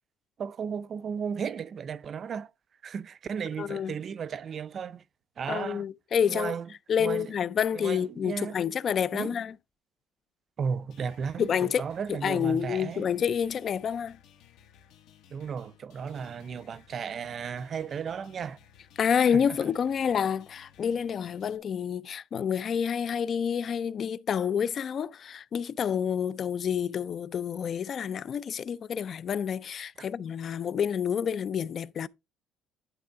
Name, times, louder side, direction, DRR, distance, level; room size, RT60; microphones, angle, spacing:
voice 1, 0.4-2.5 2.8-5.0 5.4-5.9 6.3-6.7 7.0-7.3 7.7-8.6 9.1-9.4 10.6-13.1 15.3-18.6 19.1-19.7 30.0-30.1, right 6 dB, 35° right, 0.4 m, -35 dB
voice 2, 3.6-3.9 5.5-6.5 6.9-9.5 11.4-11.8 12.1-14.2 19.0-32.1, left 7 dB, 35° left, 0.3 m, -28 dB
sound 1, 10.9-21.6, left 9 dB, 65° left, 1.1 m, -58 dB
11.0 x 3.7 x 4.5 m
cardioid pair, 160°, 0 cm